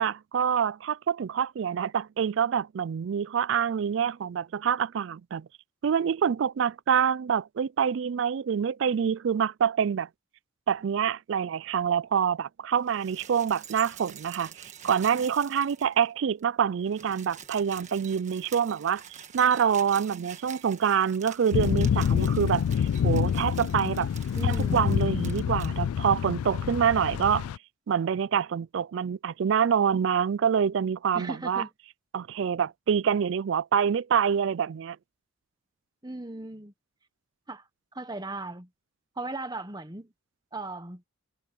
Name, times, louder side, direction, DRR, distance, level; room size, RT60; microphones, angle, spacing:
voice 1, 0.0-5.5 5.8-10.1 10.7-19.0 19.3-24.1 24.4-27.5 27.9-31.6 32.1-35.0, right 7 dB, 55° right, 0.3 m, -26 dB
sound 1, 12.8-16.1 16.4-16.5 16.7-25.7 26.7-26.8, right 8 dB, 35° right, 1.4 m, -47 dB
sound 2, 21.5-27.6, left 8 dB, 85° left, 0.3 m, -27 dB
voice 2, 24.3-24.9 31.1-31.7 36.0-36.7 37.5-37.7 37.9-38.7 39.2-40.1 40.5-41.0, right 2 dB, 20° right, 1.2 m, -37 dB
head